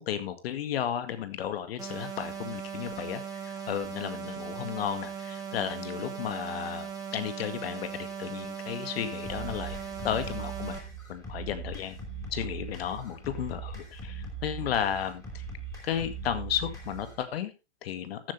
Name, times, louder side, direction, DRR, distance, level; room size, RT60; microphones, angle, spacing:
voice 1, 0.0-9.8 10.0-10.8 11.1-12.0 12.3-15.4 15.8-17.5 17.8-18.2, left 9 dB, 55° left, 10 dB, 2.1 m, -33 dB
sound 1, 1.8-10.8, right 7 dB, 10° right, 2.5 m, -38 dB
sound 2, 9.2-17.2, right 5 dB, 10° left, 4.9 m, -40 dB
14.0 x 8.2 x 3.3 m, 0.27 s
hypercardioid pair, 120°, 35 cm